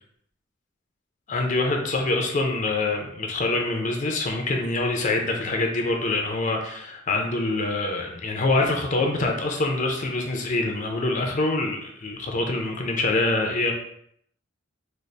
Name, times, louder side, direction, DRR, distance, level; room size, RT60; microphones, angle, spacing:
voice 1, 1.3-13.7, left 2 dB, 40° left, 2 dB, 0.5 m, -25 dB
3.9 x 2.0 x 3.2 m, 0.68 s
head